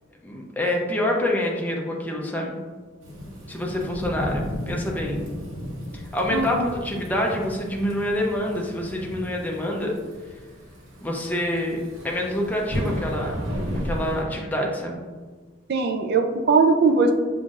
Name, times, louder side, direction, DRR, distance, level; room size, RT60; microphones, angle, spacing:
voice 1, 0.2-2.6 3.5-5.2 5.9-10.0 11.0-11.8 12.0-13.5 13.8-15.0, left 1 dB, 10° left, -1 dB, 0.4 m, -26 dB
Thunderstorm / Rain, 3.0-14.2, equal, 75° right, 0.9 m, -34 dB
voice 2, 6.3-6.7 15.7-17.1, right 4 dB, 50° right, 5 dB, 0.4 m, -20 dB
5.5 x 2.5 x 2.4 m, 1.4 s
head